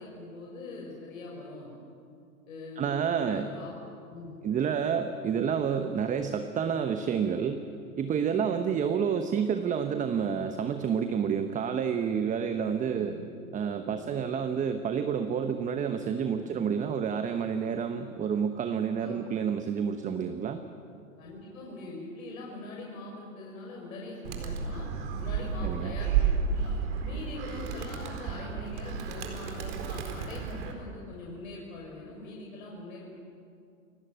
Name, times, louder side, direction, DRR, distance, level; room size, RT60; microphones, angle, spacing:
voice 1, 0.0-1.7 2.5-3.7 4.1-4.4 8.3-8.5 12.9-13.2 13.9-14.0 16.4-16.6 19.0-19.2 21.2-24.9 25.2-26.3 26.6-26.7 27.0-33.1, left 2 dB, 70° left, -2 dB, 6.0 m, -42 dB
voice 2, 2.8-3.5 4.4-7.6 8.0-13.1 13.5-20.6 25.6-25.9, right 7 dB, 20° right, 8 dB, 1.0 m, -29 dB
Animal, 24.2-30.7, right 6 dB, 55° right, 4.4 m, -32 dB
29.0 x 16.5 x 9.2 m, 2.5 s
hypercardioid pair, 120°, 42 cm